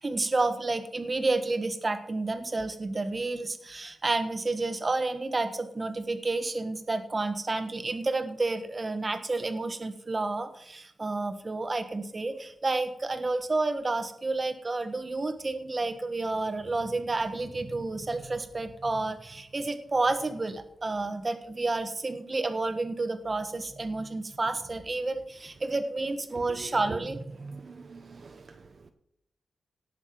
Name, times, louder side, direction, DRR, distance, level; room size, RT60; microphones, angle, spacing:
voice 1, 0.0-27.7, right 3 dB, 35° right, 1.3 m, -30 dB
voice 2, 27.5-28.9, right 5 dB, 60° right, 0.8 m, -45 dB
18.0 x 6.5 x 5.2 m
wide cardioid pair, 95°, 0 cm